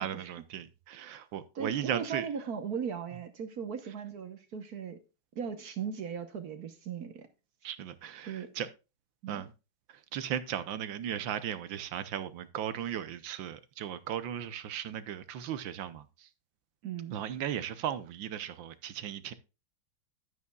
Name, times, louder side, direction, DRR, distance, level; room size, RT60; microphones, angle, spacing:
voice 1, 0.0-2.3 7.6-8.7 9.3-9.5 9.9-16.3 17.1-19.3, right 10 dB, 75° right, 1.5 m, -36 dB
voice 2, 1.5-5.0 5.3-7.3 8.3-8.5 9.2-9.4 16.8-17.2, right 7 dB, 55° right, 1.4 m, -38 dB
11.0 x 9.5 x 2.3 m
omnidirectional pair, 2.2 m